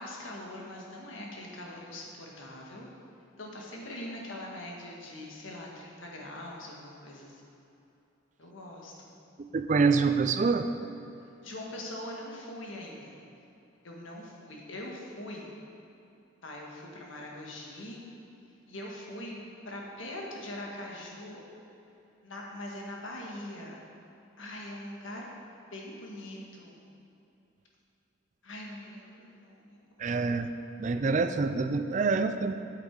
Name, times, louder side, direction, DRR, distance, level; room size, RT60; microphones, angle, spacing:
voice 1, 0.0-2.9 3.4-7.6 8.4-9.2 11.4-13.2 13.8-15.5 16.4-18.0 18.7-19.4 19.6-21.4 22.2-23.7 24.4-25.3 25.7-26.9 28.4-29.8 30.2-30.3, left 1 dB, 85° left, -1 dB, 1.6 m, -42 dB
voice 2, 9.4-10.7 30.0-30.5 30.8-32.5, right 4 dB, 35° right, 9 dB, 0.3 m, -26 dB
8.7 x 7.6 x 4.7 m, 2.8 s
head